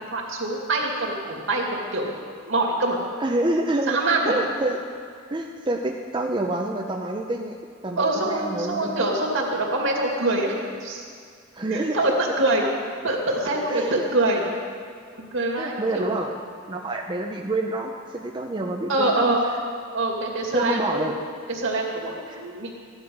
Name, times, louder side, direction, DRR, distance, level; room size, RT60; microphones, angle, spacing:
voice 1, 0.1-2.1 2.4-3.0 3.9-4.3 8.0-10.6 10.8-11.0 11.7-12.6 13.0-14.5 15.1-16.1 18.9-19.4 19.9-21.2 21.6-22.7, right 2 dB, 65° right, -1 dB, 2.4 m, -24 dB
voice 2, 3.2-4.8 5.3-7.6 7.8-9.0 11.5-12.0 13.6-14.1 15.6-16.3 16.7-19.4 20.5-21.1 22.3-22.4, right 2 dB, 25° right, 0 dB, 0.6 m, -27 dB
14.5 x 10.5 x 5.4 m, 2.1 s
head